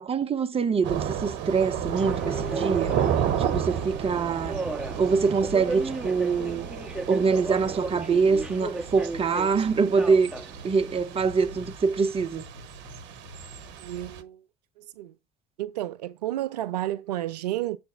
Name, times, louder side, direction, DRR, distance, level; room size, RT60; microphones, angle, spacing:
voice 1, 0.0-3.0 3.4-4.6 5.0-6.7 7.1-10.3 10.6-12.4, right 5 dB, 30° right, 1.0 m, -24 dB
Thunder / Rain, 0.8-14.2, right 9 dB, 65° right, 1.0 m, -32 dB
Subway metro underground, 2.0-11.7, right 2 dB, 5° right, 1.4 m, -36 dB
sound 1, 7.3-13.7, left 3 dB, 75° left, 1.8 m, -48 dB
voice 2, 13.8-14.4 14.8-15.1 15.6-17.8, right 14 dB, 80° right, 0.4 m, -31 dB
7.8 x 3.4 x 6.5 m
hypercardioid pair, 60°, 20 cm